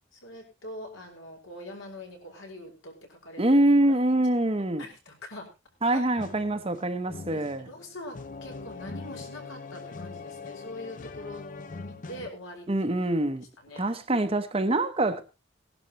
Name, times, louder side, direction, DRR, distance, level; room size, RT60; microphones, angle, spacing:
voice 1, 0.1-3.4 3.8-3.9 4.8-5.5 5.9-6.0 7.3-11.5 11.8-12.7 13.6-13.9, left 1 dB, 80° left, 5.2 m, -43 dB
voice 2, 3.4-4.8 5.8-7.6 12.7-13.4 13.8-15.2, right 1 dB, 30° right, 0.9 m, -24 dB
sound 1, 6.2-12.3, left 3 dB, 40° left, 0.7 m, -42 dB
19.5 x 11.5 x 3.0 m
head